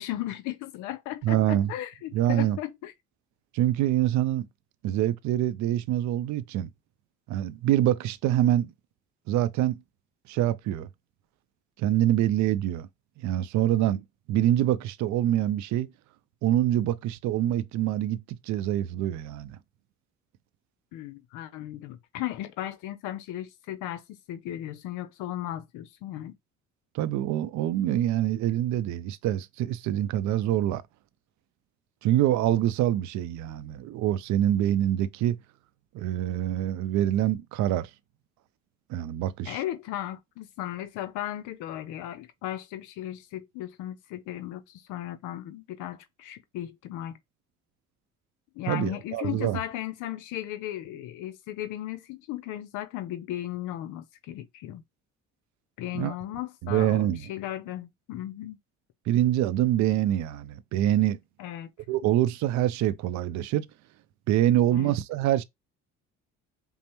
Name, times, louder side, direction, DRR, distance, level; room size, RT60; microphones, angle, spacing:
voice 1, 0.0-2.9 20.9-26.4 39.5-47.2 48.5-54.8 55.8-58.6 61.4-61.7 64.7-65.0, left 13 dB, 80° left, 0.6 m, -36 dB
voice 2, 1.2-1.7 2.1-2.6 3.5-4.5 4.8-6.7 7.3-8.7 9.3-9.8 10.3-10.9 11.8-12.9 13.2-15.9 16.4-19.6 26.9-30.8 32.0-35.4 35.9-37.9 38.9-39.6 48.7-49.6 55.9-56.1 56.6-57.2 59.1-61.2 61.9-63.7 64.3-65.4, right 12 dB, 70° right, 0.5 m, -25 dB
5.3 x 2.0 x 3.0 m
supercardioid pair, 75°, 30 cm